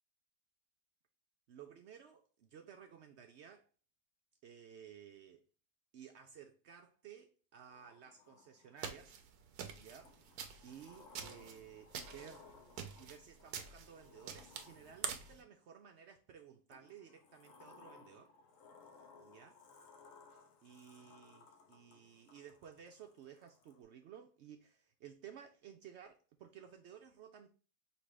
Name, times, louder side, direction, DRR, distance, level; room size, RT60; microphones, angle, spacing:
voice 1, 1.5-3.7 4.4-5.4 5.9-9.1 9.7-10.3 10.6-12.5 13.0-18.3 19.2-19.6 20.6-27.5, right 8 dB, 90° right, 0.6 m, -56 dB
Sliding door, 7.7-9.1 10.0-15.6 16.7-23.8, left 4 dB, 60° left, 1.0 m, -62 dB
sound 1, 8.8-15.4, right 7 dB, 70° right, 1.1 m, -47 dB
5.4 x 2.9 x 3.2 m
omnidirectional pair, 1.7 m